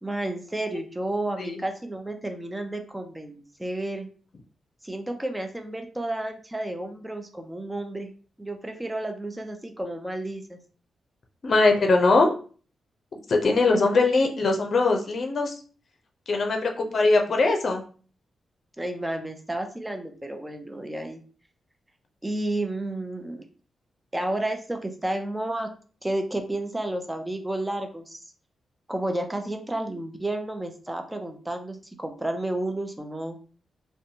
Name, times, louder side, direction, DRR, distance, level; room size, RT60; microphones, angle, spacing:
voice 1, 0.0-4.1 4.8-8.1 8.4-10.6 18.8-21.2 22.2-23.4 24.1-25.7 26.0-28.2 28.9-33.4, right 1 dB, 15° right, 6 dB, 0.5 m, -31 dB
voice 2, 11.4-12.3 13.3-15.6 16.3-17.8, left 3 dB, 55° left, 3 dB, 0.6 m, -21 dB
2.5 x 2.2 x 2.7 m, 0.40 s
cardioid pair, 60°, 0 cm